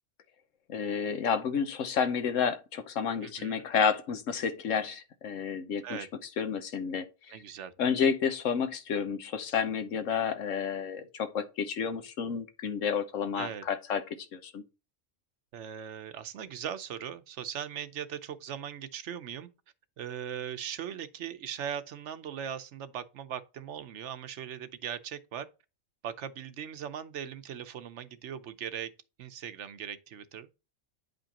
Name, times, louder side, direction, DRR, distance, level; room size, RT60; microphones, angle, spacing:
voice 1, 0.7-6.1 6.4-7.4 7.8-14.6, left 6 dB, 80° left, 1.2 m, -30 dB
voice 2, 3.2-3.6 5.8-6.1 7.3-7.7 10.1-10.2 13.3-13.6 15.5-19.5 20.0-25.5 26.0-28.9 29.2-30.6, right 9 dB, 70° right, 1.0 m, -39 dB
9.5 x 5.2 x 2.9 m
omnidirectional pair, 1.3 m